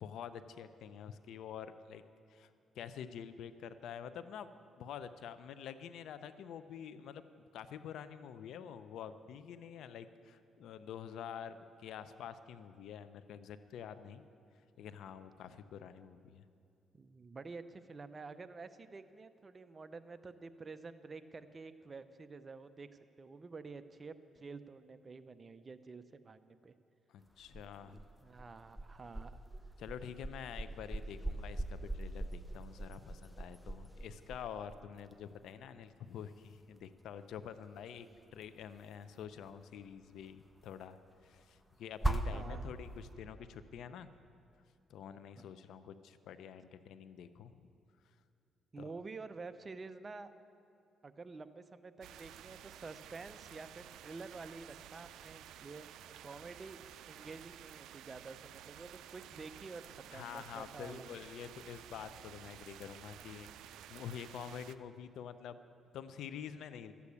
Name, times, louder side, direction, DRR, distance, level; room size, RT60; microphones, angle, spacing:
voice 1, 0.0-2.0 2.3-2.5 2.7-4.5 4.8-7.2 7.5-14.2 14.8-16.4 27.1-28.0 29.8-41.0 41.2-44.1 44.9-47.7 48.8-48.9 60.1-65.6 65.9-66.9, left 8 dB, 75° left, 12 dB, 0.6 m, -47 dB
voice 2, 16.9-22.9 23.2-26.7 27.8-29.4 42.3-42.7 48.7-50.3 51.0-55.9 56.2-61.1, right 4 dB, 30° right, 11 dB, 0.6 m, -49 dB
sound 1, 27.2-43.1, right 1 dB, 5° left, 0.9 m, -42 dB
sound 2, 52.0-64.8, right 11 dB, 85° right, 0.4 m, -53 dB
13.0 x 8.3 x 8.5 m, 2.5 s
cardioid pair, 90°, 0 cm